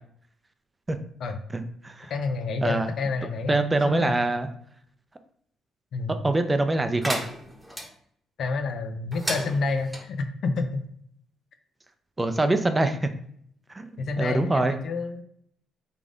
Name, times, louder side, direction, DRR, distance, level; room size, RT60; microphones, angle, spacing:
voice 1, 1.5-2.1 2.6-2.9 3.5-4.5 6.2-7.2 12.2-13.1 13.7-14.8, right 2 dB, 20° right, 8 dB, 0.5 m, -24 dB
voice 2, 2.1-4.2 5.9-6.2 8.4-10.8 14.0-15.2, left 3 dB, 65° left, 7 dB, 0.6 m, -29 dB
sound 1, 7.0-7.9 9.1-10.0, right 1 dB, 5° right, 1.0 m, -33 dB
3.8 x 3.5 x 3.6 m, 0.67 s
supercardioid pair, 70°, 0 cm